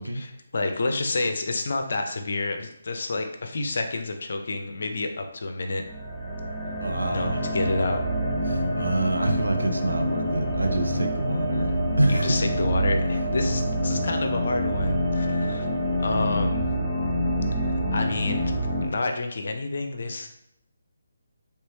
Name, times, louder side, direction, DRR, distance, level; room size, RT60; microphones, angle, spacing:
voice 1, 0.1-5.8 7.1-8.0 12.1-15.7 16.0-16.7 17.6-18.5 18.8-20.3, left 3 dB, 55° left, 5 dB, 0.5 m, -29 dB
sound 1, 5.9-18.9, equal, 10° left, 0.9 m, -26 dB
voice 2, 6.8-7.4 8.5-12.5, right 2 dB, 80° right, 4 dB, 0.5 m, -27 dB
3.3 x 3.0 x 2.9 m, 0.79 s
figure-of-eight pair, 145°, 0 cm